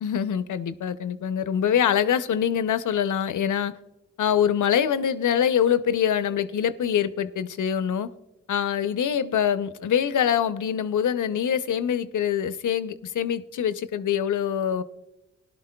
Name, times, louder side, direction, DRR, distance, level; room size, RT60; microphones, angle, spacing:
voice 1, 0.0-3.7 4.2-8.1 8.5-14.8, left 8 dB, 80° left, 0.6 m, -24 dB
17.5 x 11.5 x 2.2 m
cardioid pair, 50°, 30 cm